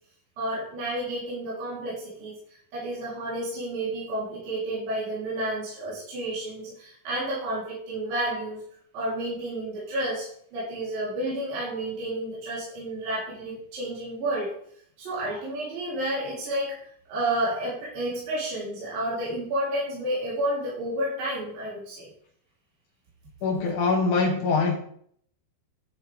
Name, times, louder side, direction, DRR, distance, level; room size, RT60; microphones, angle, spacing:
voice 1, 0.4-8.6 8.9-14.6 15.0-22.1, right 1 dB, 60° right, -8 dB, 5.2 m, -31 dB
voice 2, 23.4-24.8, left 4 dB, 70° left, 3 dB, 2.1 m, -23 dB
11.5 x 7.5 x 3.5 m, 0.62 s
omnidirectional pair, 4.6 m